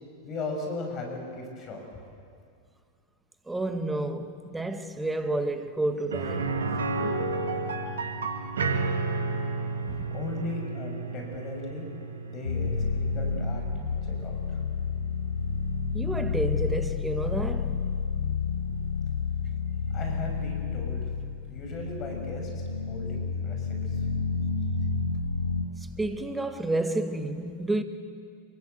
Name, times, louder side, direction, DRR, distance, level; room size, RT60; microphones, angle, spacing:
voice 1, 0.2-2.0 10.1-11.9 12.2-13.6 14.2-14.4 19.9-21.1 21.5-24.0, left 3 dB, 30° left, 6.6 m, -37 dB
voice 2, 3.5-6.5 7.0-7.3 9.8-10.1 15.9-17.8 26.0-27.8, right 2 dB, 10° right, 2.0 m, -30 dB
sound 1, 6.1-15.9 16.2-16.3 18.7-18.8, right 3 dB, 65° right, 2.5 m, -32 dB
sound 2, 12.4-25.6, left 5 dB, 85° left, 2.2 m, -30 dB
27.5 x 23.5 x 8.2 m
figure-of-eight pair, 90°, 0 cm